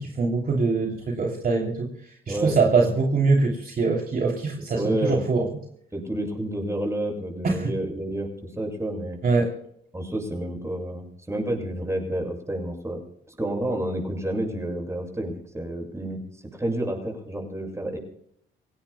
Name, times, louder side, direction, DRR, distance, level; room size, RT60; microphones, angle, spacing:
voice 1, 0.0-1.9 2.3-5.5 7.4-7.7 9.2-9.5, right 4 dB, 45° right, 0 dB, 3.0 m, -23 dB
voice 2, 2.3-2.9 4.7-5.3 5.9-8.3 8.6-9.2 9.9-13.0 13.4-16.2 16.5-18.0, right 1 dB, 15° right, 2 dB, 7.0 m, -29 dB
27.5 x 17.5 x 2.2 m, 0.70 s
cardioid pair, 90°, 20 cm